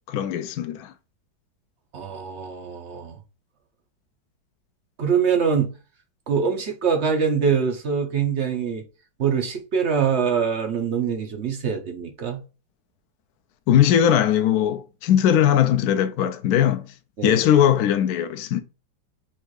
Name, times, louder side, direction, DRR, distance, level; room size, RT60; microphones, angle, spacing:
voice 1, 0.1-0.9 13.7-16.8 17.2-18.6, left 10 dB, 75° left, 0.8 m, -19 dB
voice 2, 1.9-3.1 5.0-5.7 6.3-8.8 9.2-12.4 17.2-17.4, right 6 dB, 60° right, 0.7 m, -24 dB
4.4 x 2.5 x 4.6 m
omnidirectional pair, 2.1 m